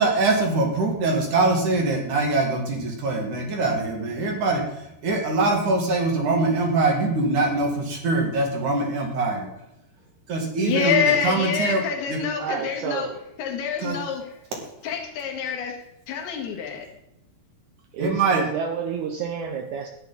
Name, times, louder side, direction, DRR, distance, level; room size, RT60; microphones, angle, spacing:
voice 1, 0.0-9.5 10.3-12.2 13.8-14.0 18.0-18.4, right 3 dB, 55° right, 1 dB, 3.4 m, -23 dB
voice 2, 10.6-13.1 13.4-14.2 14.8-15.8 16.1-16.9, left 7 dB, 75° left, 3 dB, 3.6 m, -26 dB
voice 3, 12.4-13.2 15.4-15.5 17.9-19.9, right 7 dB, 85° right, 4 dB, 1.7 m, -30 dB
12.5 x 9.9 x 4.0 m, 0.84 s
omnidirectional pair, 4.7 m